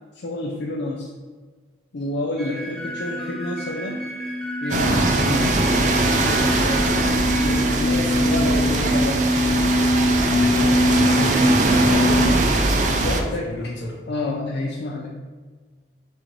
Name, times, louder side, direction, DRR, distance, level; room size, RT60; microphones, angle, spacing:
voice 1, 0.1-1.1 1.9-4.0 4.6-7.1 7.4-9.4 13.0-13.5 14.1-15.1, left 2 dB, 65° left, -2 dB, 0.5 m, -29 dB
sound 1, 2.4-7.6, equal, ahead, 1.3 m, -35 dB
sound 2, 2.8-12.2, left 1 dB, 70° right, 0.9 m, -23 dB
sound 3, 4.7-13.2, right 2 dB, 40° right, 0.4 m, -21 dB
voice 2, 7.9-9.0 10.2-14.0, left 1 dB, 85° left, 0 dB, 0.9 m, -31 dB
6.1 x 2.6 x 3.1 m, 1.5 s
head